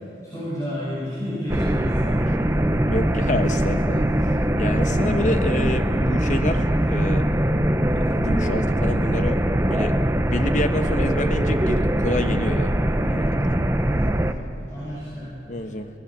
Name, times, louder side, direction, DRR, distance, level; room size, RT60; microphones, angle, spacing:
voice 1, 0.0-2.8 13.1-15.8, equal, 20° left, -10 dB, 6.2 m, -33 dB
sound 1, 1.5-14.3, right 1 dB, 15° right, 0.7 m, -22 dB
voice 2, 2.9-4.0 4.6-7.2 8.1-9.4 9.7-9.9 10.2-12.7 13.0-13.5 15.5-15.9, left 1 dB, 45° left, 7 dB, 1.2 m, -28 dB
25.5 x 18.5 x 7.2 m, 3.0 s
head